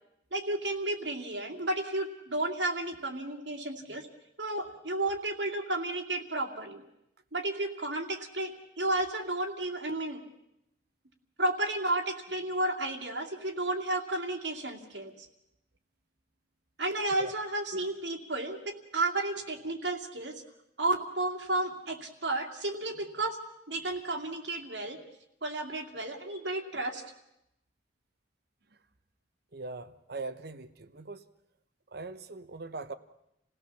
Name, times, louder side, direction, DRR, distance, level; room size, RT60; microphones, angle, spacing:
voice 1, 0.3-4.1 4.4-6.8 7.3-10.2 11.4-15.3 16.8-20.3 20.8-23.4 23.7-25.0 25.4-27.0, right 2 dB, 80° right, 2.5 m, -32 dB
voice 2, 29.5-31.2 31.9-32.9, right 3 dB, 60° right, 1.1 m, -41 dB
27.5 x 17.0 x 7.0 m
head